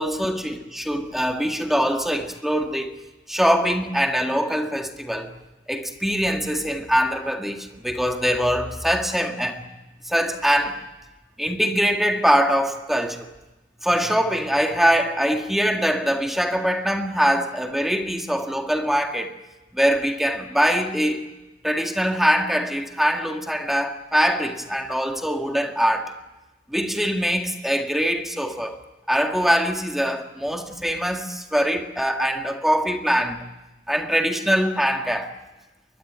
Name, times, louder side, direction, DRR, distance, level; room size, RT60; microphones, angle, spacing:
voice 1, 0.0-2.9 3.3-5.3 5.7-9.7 10.1-10.8 11.4-13.3 13.8-19.4 19.7-21.3 21.6-26.1 26.7-28.8 29.1-33.4 33.9-35.3, equal, ahead, 1.9 m, -23 dB
23.0 x 21.5 x 9.4 m
head